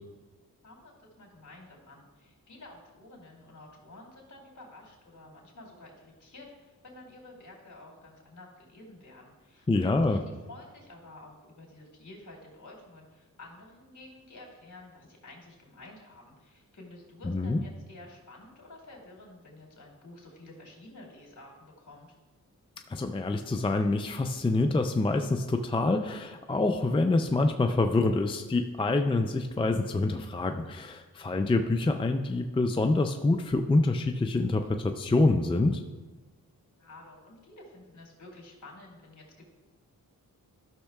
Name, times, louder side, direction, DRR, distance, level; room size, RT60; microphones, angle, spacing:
voice 1, 0.6-22.1 36.8-39.4, left 2 dB, 55° left, -1 dB, 2.7 m, -51 dB
voice 2, 9.7-10.2 17.2-17.6 22.9-35.8, left 2 dB, 15° left, 6 dB, 0.4 m, -26 dB
13.5 x 6.4 x 2.3 m, 1.2 s
cardioid pair, 70°, 35 cm